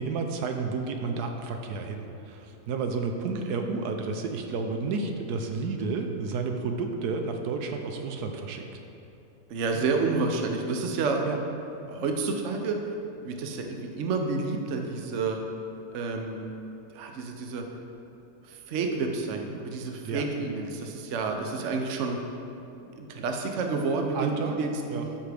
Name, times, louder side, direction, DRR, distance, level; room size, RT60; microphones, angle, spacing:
voice 1, 0.0-8.6 11.2-11.4 20.0-20.2 24.1-24.6 24.9-25.0, right 4 dB, 80° right, 4 dB, 1.2 m, -31 dB
voice 2, 9.5-11.3 11.9-12.8 13.2-15.4 15.9-16.5 16.9-17.6 18.4-22.2 23.0-25.2, right 4 dB, 60° right, 3 dB, 0.9 m, -29 dB
12.5 x 5.8 x 3.4 m, 2.9 s
omnidirectional pair, 1.7 m